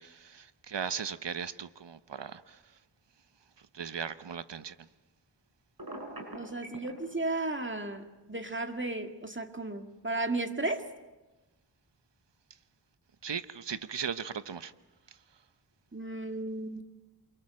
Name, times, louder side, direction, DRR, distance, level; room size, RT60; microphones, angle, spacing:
voice 1, 0.0-2.6 3.7-4.7 13.2-14.7, right 7 dB, 80° right, 1.0 m, -37 dB
Telephone, 5.8-6.9, right 1 dB, 55° right, 6.8 m, -41 dB
voice 2, 6.4-10.8 15.9-16.8, right 2 dB, 25° right, 1.9 m, -34 dB
28.0 x 24.5 x 7.6 m
wide cardioid pair, 45°, 42 cm